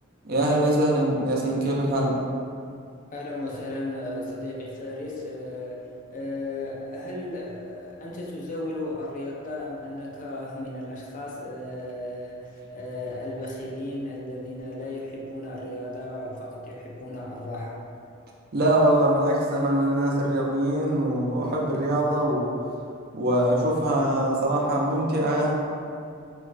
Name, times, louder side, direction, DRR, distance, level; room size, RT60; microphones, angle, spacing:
voice 1, 0.2-2.2 18.5-22.5 23.1-25.5, right 1 dB, 45° right, -3 dB, 0.5 m, -23 dB
voice 2, 3.1-17.8, left 1 dB, 40° left, -3 dB, 0.5 m, -35 dB
4.0 x 2.2 x 2.4 m, 2.4 s
head